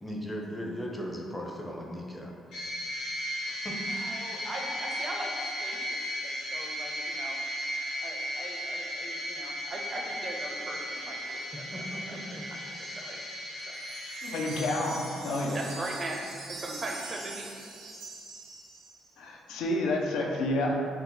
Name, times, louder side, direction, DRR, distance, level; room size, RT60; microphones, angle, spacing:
voice 1, 0.0-2.4 3.4-3.8 11.3-11.4 11.7-12.5, equal, 15° left, -1 dB, 0.5 m, -38 dB
sound 1, 2.5-15.3, equal, 70° left, 0.9 m, -36 dB
voice 2, 3.9-7.4 8.0-12.4 12.8-13.2 15.5-16.2 16.5-17.5, right 2 dB, 35° right, 0 dB, 0.5 m, -40 dB
sound 2, 13.7-19.1, right 3 dB, 85° right, 0.6 m, -43 dB
voice 3, 14.2-15.6 19.2-20.9, left 1 dB, 85° left, 0 dB, 0.4 m, -29 dB
2.7 x 2.1 x 3.8 m, 2.3 s
cardioid pair, 90°, 0 cm